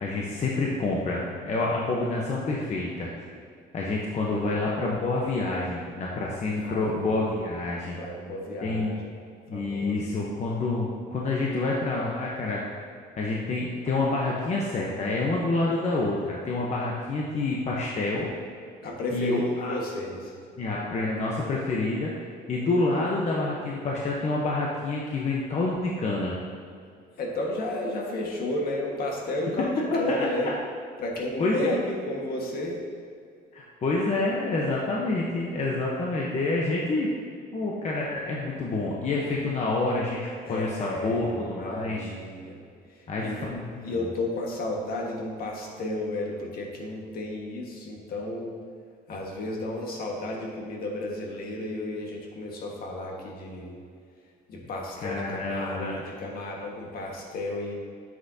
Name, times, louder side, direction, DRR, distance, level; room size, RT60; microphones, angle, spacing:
voice 1, 0.0-3.1 3.7-8.0 8.6-9.0 9.5-12.6 13.2-18.3 19.1-19.7 20.6-26.3 29.9-30.3 31.4-31.8 33.5-37.1 37.5-42.1 43.1-44.1 55.0-56.1, left 2 dB, 40° left, -3 dB, 1.0 m, -28 dB
voice 2, 6.6-7.2 8.0-9.1 9.5-10.1 18.8-20.3 27.2-30.5 31.0-32.8 40.4-42.6 42.9-43.4 43.8-48.6 49.1-53.7 54.5-57.7, left 1 dB, 60° left, -1 dB, 1.7 m, -32 dB
9.9 x 7.7 x 2.8 m, 2.2 s
cardioid pair, 110°, 17 cm